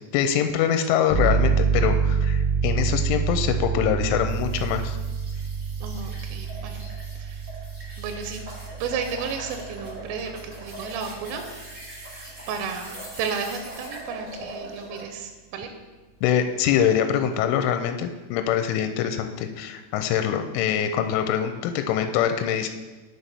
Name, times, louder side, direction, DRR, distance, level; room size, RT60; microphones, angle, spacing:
voice 1, 0.1-5.0 16.2-22.7, left 9 dB, 85° left, 7 dB, 2.9 m, -24 dB
sound 1, 1.1-11.6, right 5 dB, 55° left, 1.9 m, -27 dB
sound 2, 4.3-15.1, right 1 dB, 45° right, 1.1 m, -42 dB
voice 2, 5.8-6.9 7.2-7.5 8.0-8.4 8.8-11.4 12.5-15.7, right 6 dB, 85° right, 6 dB, 3.2 m, -33 dB
8.1 x 6.1 x 4.1 m, 1.2 s
omnidirectional pair, 5.7 m